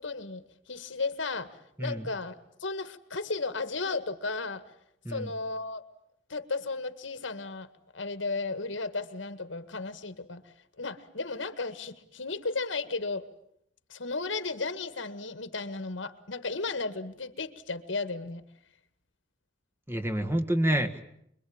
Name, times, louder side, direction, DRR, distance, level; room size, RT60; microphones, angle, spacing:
voice 1, 0.0-4.6 5.1-5.8 6.3-7.7 7.9-10.4 10.8-13.3 13.9-18.4, left 3 dB, 90° left, 11 dB, 1.9 m, -34 dB
voice 2, 19.9-21.0, right 1 dB, 15° right, 6 dB, 1.7 m, -28 dB
25.5 x 23.0 x 8.8 m, 0.73 s
head